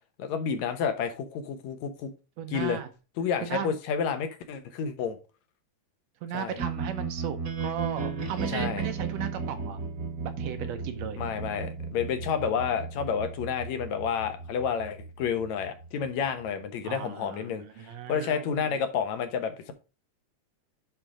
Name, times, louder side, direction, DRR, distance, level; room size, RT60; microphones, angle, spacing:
voice 1, 0.2-2.1 2.5-2.8 3.2-5.2 6.3-6.6 8.5-8.9 11.2-19.7, left 7 dB, 70° left, 8 dB, 2.2 m, -30 dB
voice 2, 2.4-2.9 3.4-3.8 6.2-9.8 10.4-11.2 16.8-18.8, right 9 dB, 70° right, 9 dB, 1.8 m, -36 dB
sound 1, 6.6-16.6, right 5 dB, 45° right, 1.4 m, -35 dB
9.6 x 3.8 x 4.9 m, 0.32 s
omnidirectional pair, 3.4 m